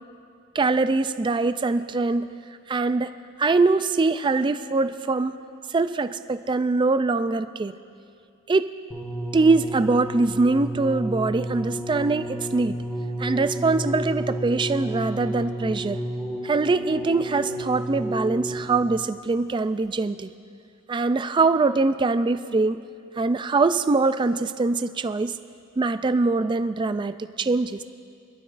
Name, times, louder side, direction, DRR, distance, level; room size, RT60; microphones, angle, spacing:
voice 1, 0.5-2.3 2.7-3.1 3.4-5.4 5.7-7.8 8.5-8.7 9.3-12.8 13.2-16.0 16.4-20.3 20.9-22.8 23.2-25.4 25.8-27.8, right 3 dB, 25° right, 11 dB, 0.3 m, -23 dB
sound 1, 8.9-19.0 19.8-19.9, right 1 dB, ahead, 1.4 m, -31 dB
25.5 x 11.5 x 2.5 m, 2.3 s
head